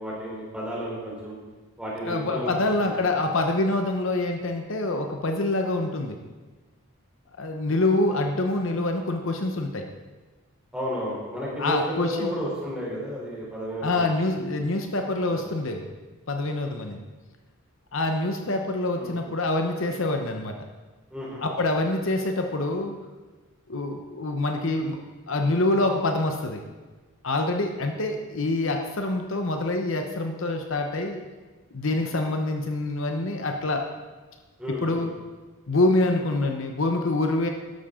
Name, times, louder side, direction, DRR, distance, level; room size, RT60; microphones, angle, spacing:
voice 1, 0.0-1.4 1.8-2.9 10.7-14.1 15.3-15.4 18.9-19.2 21.1-21.5 34.6-35.1, equal, 5° right, -6 dB, 3.6 m, -32 dB
voice 2, 2.0-6.2 7.4-9.8 11.6-12.3 13.8-15.8 16.3-17.0 17.9-20.5 21.4-22.9 23.7-25.0 25.3-26.6 27.2-31.2 31.7-33.8 34.7-35.1 35.7-37.5, left 2 dB, 60° left, 4 dB, 0.9 m, -26 dB
13.0 x 11.5 x 3.8 m, 1.3 s
head